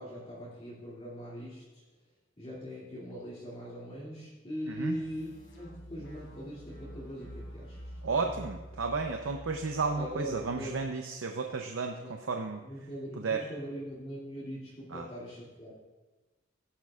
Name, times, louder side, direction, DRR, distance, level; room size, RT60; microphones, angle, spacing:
voice 1, 0.0-1.8 2.4-8.4 9.9-10.8 12.0-12.1 12.6-15.7, equal, 30° left, -8 dB, 2.4 m, -41 dB
sound 1, 4.6-10.8, equal, 60° left, 3.1 m, -48 dB
voice 2, 4.7-5.0 8.0-12.6 13.2-13.4 14.9-15.0, right 4 dB, 80° right, 4 dB, 0.7 m, -33 dB
15.5 x 10.5 x 2.4 m, 1.2 s
head